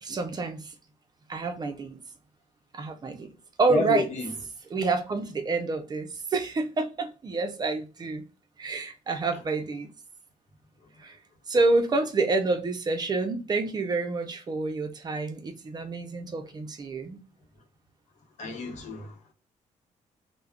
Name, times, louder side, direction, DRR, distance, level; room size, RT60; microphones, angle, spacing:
voice 1, 0.0-0.7 1.3-2.0 2.7-3.3 3.6-4.1 4.7-8.3 8.6-9.9 11.0-11.2 11.5-17.2, right 3 dB, 30° right, 0.5 m, -28 dB
voice 2, 3.7-4.2 18.4-19.1, left 4 dB, 65° left, 0.9 m, -30 dB
2.3 x 2.1 x 3.4 m
cardioid pair, 110°, 13 cm